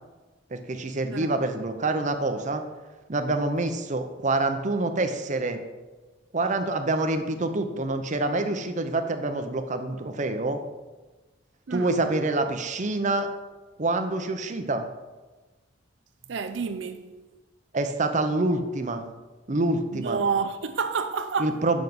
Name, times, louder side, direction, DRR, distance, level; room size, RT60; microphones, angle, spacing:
voice 1, 0.5-2.6 3.1-5.6 6.3-10.6 11.7-13.3 13.8-14.9 17.7-19.1 19.5-20.2 21.4-21.8, right 2 dB, 40° right, 0.8 m, -26 dB
voice 2, 16.3-17.1 19.9-21.6, right 5 dB, 70° right, 0.5 m, -29 dB
7.9 x 6.3 x 5.3 m
head